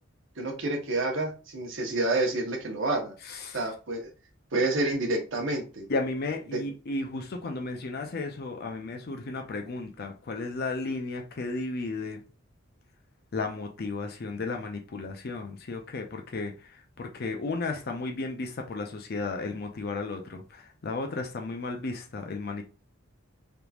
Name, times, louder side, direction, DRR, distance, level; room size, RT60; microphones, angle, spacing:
voice 1, 0.4-3.1 3.5-4.1 4.5-5.9 6.5-6.6, right 2 dB, 60° right, 0.9 m, -28 dB
voice 2, 3.2-3.6 5.9-12.2 13.3-22.6, left 3 dB, 50° left, 0.5 m, -34 dB
3.5 x 3.0 x 2.3 m
head